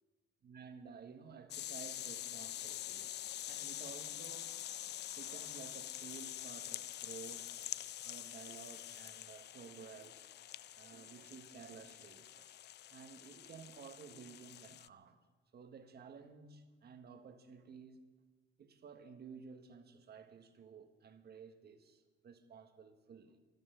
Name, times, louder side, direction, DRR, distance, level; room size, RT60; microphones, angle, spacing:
voice 1, 0.4-4.6 5.2-7.6 8.0-10.3 10.7-12.5 12.9-15.2 15.5-18.0 18.6-23.4, right 6 dB, 55° right, 1.5 m, -54 dB
sound 1, 1.5-14.9, left 12 dB, 60° left, 0.4 m, -46 dB
13.5 x 12.5 x 6.9 m
cardioid pair, 90°, 20 cm